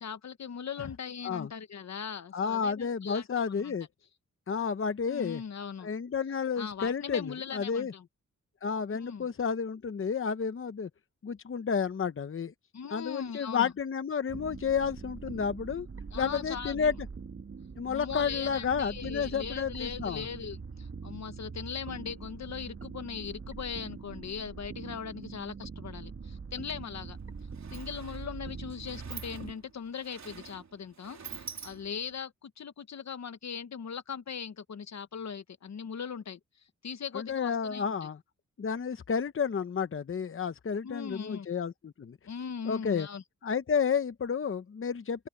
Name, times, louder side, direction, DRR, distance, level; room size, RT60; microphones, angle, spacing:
voice 1, 0.0-3.7 5.1-5.9 6.6-8.1 8.9-9.3 12.7-13.7 16.1-16.9 17.9-27.2 27.7-36.4 36.8-38.1 40.8-41.5 42.2-43.2, left 7 dB, 65° left, 1.1 m, -39 dB
voice 2, 2.3-3.9 4.5-5.4 5.8-7.9 8.6-10.9 11.2-12.5 12.9-15.9 16.1-16.9 17.8-20.3 37.1-38.2 38.6-42.2 42.7-43.1 43.4-45.3, left 6 dB, 45° left, 0.8 m, -31 dB
sound 1, 14.3-29.5, right 5 dB, 45° right, 1.5 m, -43 dB
Sliding door, 26.9-27.0 27.3-32.2, right 6 dB, 70° right, 3.3 m, -47 dB
wide cardioid pair, 95°, 29 cm